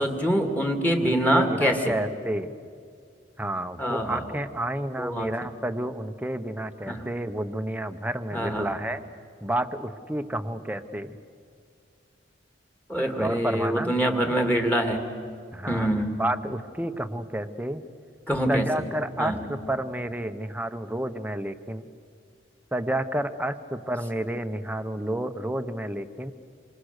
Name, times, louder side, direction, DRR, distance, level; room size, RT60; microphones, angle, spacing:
voice 1, 0.0-2.0 3.8-4.4 5.0-5.3 6.9-7.1 8.3-8.7 12.9-15.1 15.7-16.2 18.3-18.7 19.2-19.4, equal, 10° left, 4 dB, 1.9 m, -25 dB
voice 2, 1.0-2.6 3.4-9.0 9.4-11.2 13.2-13.9 15.5-15.9 16.2-17.8 18.5-21.8 22.7-26.3, right 1 dB, 10° right, 8 dB, 0.9 m, -30 dB
27.0 x 26.0 x 6.6 m, 2.2 s
head